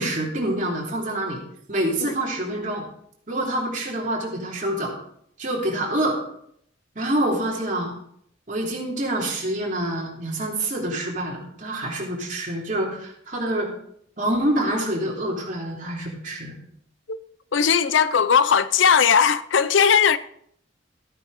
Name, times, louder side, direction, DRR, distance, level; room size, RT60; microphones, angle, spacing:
voice 1, 0.0-1.4 1.7-2.9 3.3-4.9 5.4-6.2 6.9-8.0 8.5-13.7 14.2-16.6, right 1 dB, 40° right, 3.2 m, -26 dB
voice 2, 17.5-20.2, left 7 dB, 75° left, 0.5 m, -18 dB
14.0 x 9.0 x 4.1 m
head